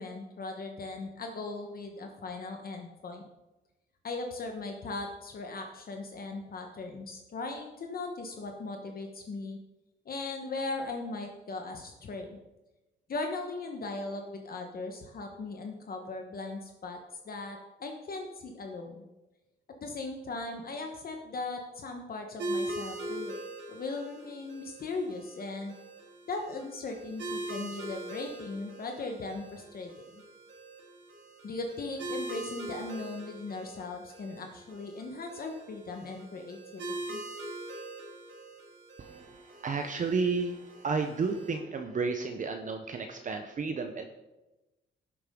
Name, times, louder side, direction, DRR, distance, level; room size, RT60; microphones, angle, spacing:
voice 1, 0.0-3.2 4.0-9.6 10.0-12.4 13.1-17.0 17.2-19.0 19.8-23.4 23.7-25.8 26.3-30.2 31.4-36.8 37.1-37.2, left 3 dB, 50° left, 3 dB, 1.2 m, -38 dB
sound 1, 22.4-41.5, right 2 dB, 70° right, 2.7 m, -42 dB
voice 2, 39.0-44.1, right 4 dB, 40° right, 6 dB, 0.8 m, -32 dB
12.0 x 9.4 x 3.8 m, 1.0 s
cardioid pair, 125°, 20 cm